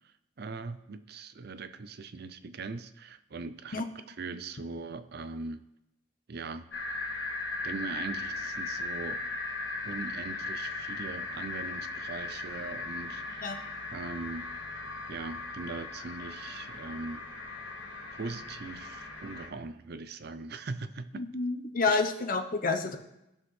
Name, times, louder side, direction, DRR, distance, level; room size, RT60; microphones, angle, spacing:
voice 1, 0.4-5.6 6.3-6.7 7.6-9.2 9.8-13.7 13.9-14.5 15.1-17.2 18.1-21.2 21.9-22.0, right 3 dB, 50° right, 12 dB, 0.5 m, -40 dB
sound 1, 6.7-19.5, left 3 dB, 75° left, 1.4 m, -38 dB
voice 2, 21.1-23.0, left 4 dB, 40° left, 5 dB, 0.8 m, -29 dB
17.5 x 6.1 x 3.2 m, 0.89 s
head